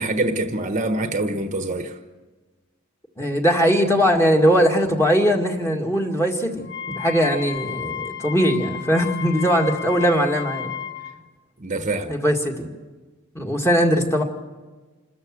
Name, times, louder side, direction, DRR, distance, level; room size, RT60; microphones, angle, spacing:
voice 1, 0.0-2.0 11.6-12.1, right 2 dB, 35° right, 7 dB, 1.2 m, -25 dB
voice 2, 3.2-10.7 12.1-12.7 13.3-14.2, equal, 15° left, 2 dB, 2.1 m, -20 dB
Wind instrument woodwind instrument, 6.6-11.1, left 9 dB, 55° left, 1.4 m, -33 dB
28.0 x 13.5 x 7.8 m, 1.3 s
head